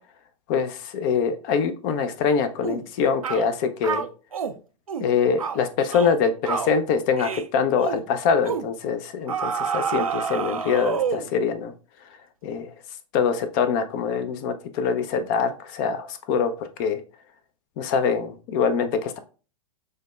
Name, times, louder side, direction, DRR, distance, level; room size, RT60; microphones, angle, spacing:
voice 1, 0.5-4.1 5.0-11.7 12.4-12.7 13.1-17.0 17.8-19.2, left 6 dB, 35° left, 10 dB, 0.4 m, -24 dB
sound 1, 2.6-2.8 3.2-3.5 3.8-4.5 4.9-5.1 5.4-5.6 5.9-6.2 6.4-6.7 7.2-7.5 7.8-8.0 8.4-8.7 9.3-11.3, right 7 dB, 85° right, 0.4 m, -28 dB
6.3 x 2.1 x 2.2 m, 0.36 s
figure-of-eight pair, 105°, 17 cm